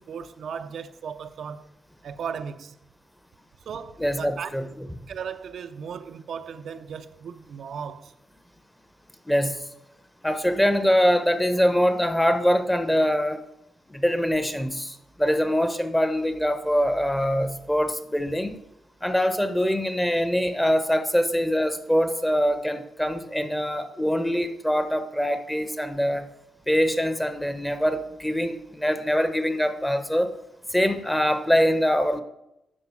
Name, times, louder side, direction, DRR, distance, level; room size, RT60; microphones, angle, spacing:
voice 1, 0.0-1.7 2.0-2.7 3.7-4.5 5.1-8.1, right 7 dB, 65° right, 0.5 m, -36 dB
voice 2, 4.0-4.7 9.3-9.6 10.2-13.4 13.9-18.6 19.0-26.2 26.7-30.3 30.7-32.2, equal, 5° left, 0.9 m, -23 dB
9.9 x 5.0 x 7.2 m
cardioid pair, 110°, 0 cm